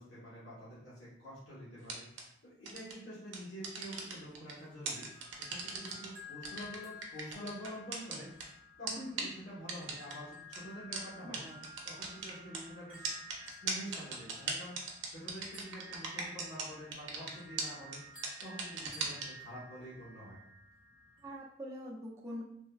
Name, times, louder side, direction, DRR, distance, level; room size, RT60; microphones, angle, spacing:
voice 1, 0.0-5.1 5.4-8.3 8.8-11.4 11.8-13.1 13.4-14.7 15.1-18.0 18.4-20.4, equal, 90° left, -10 dB, 1.0 m, -47 dB
sound 1, 1.8-2.2 2.7-2.9 3.3-4.5 4.9-6.1 6.4-8.4 8.9-9.0 9.2-9.3 9.7-10.1 10.5-10.6 10.9-11.0 11.3-11.4 11.6-12.6 13.0-16.7 16.9-17.3 17.6-17.7 17.9-18.0 18.2-19.3, right 5 dB, 85° right, 0.5 m, -37 dB
sound 2, 4.5-21.4, left 2 dB, 10° left, 0.8 m, -53 dB
voice 2, 11.2-11.7 21.2-22.4, equal, 15° right, -5 dB, 0.5 m, -44 dB
3.3 x 2.1 x 2.2 m, 0.76 s
head